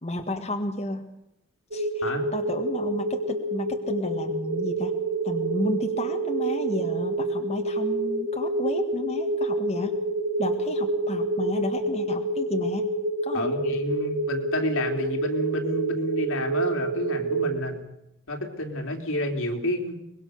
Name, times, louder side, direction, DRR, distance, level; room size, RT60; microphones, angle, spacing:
voice 1, 0.0-1.1 1.7-5.0 5.2-10.0 10.4-12.9 13.2-13.6, left 1 dB, 30° left, 4 dB, 1.7 m, -32 dB
sound 1, 1.7-17.6, right 2 dB, 55° right, 3.4 m, -28 dB
voice 2, 13.3-17.9 18.3-20.0, left 1 dB, 80° left, 3 dB, 3.3 m, -29 dB
24.0 x 21.0 x 6.6 m, 0.80 s
head